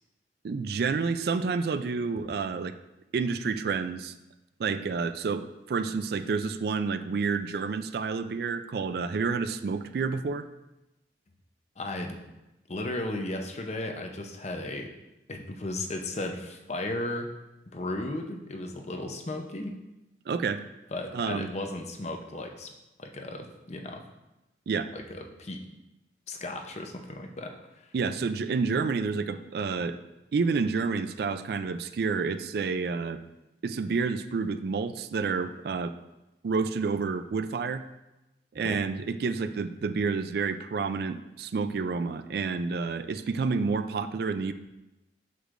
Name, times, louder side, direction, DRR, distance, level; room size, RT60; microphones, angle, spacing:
voice 1, 0.4-2.7 3.1-4.1 4.6-10.4 20.3-20.6 21.1-21.5 24.7-24.9 27.9-30.0 30.3-33.2 33.6-35.9 36.4-37.8 38.5-44.5, right 4 dB, 60° right, 11 dB, 0.3 m, -29 dB
voice 2, 11.8-12.2 12.7-14.9 15.3-17.3 17.7-19.7 20.9-22.7 23.0-24.0 24.9-25.6 26.3-27.5 38.6-38.8, left 2 dB, 40° left, 3 dB, 0.7 m, -35 dB
8.0 x 6.4 x 2.5 m, 0.99 s
head